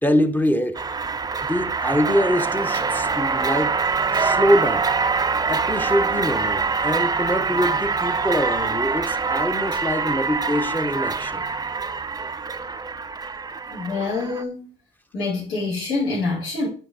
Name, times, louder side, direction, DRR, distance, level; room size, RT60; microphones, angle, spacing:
voice 1, 0.0-0.8 1.4-3.8 4.1-4.9 5.5-11.5, left 1 dB, 10° left, 0.7 m, -24 dB
sound 1, 0.7-14.4, right 4 dB, 20° right, 0.5 m, -24 dB
voice 2, 13.7-14.7 15.1-16.7, left 3 dB, 85° left, 4.0 m, -26 dB
9.9 x 4.5 x 4.2 m
cardioid pair, 90°, 20 cm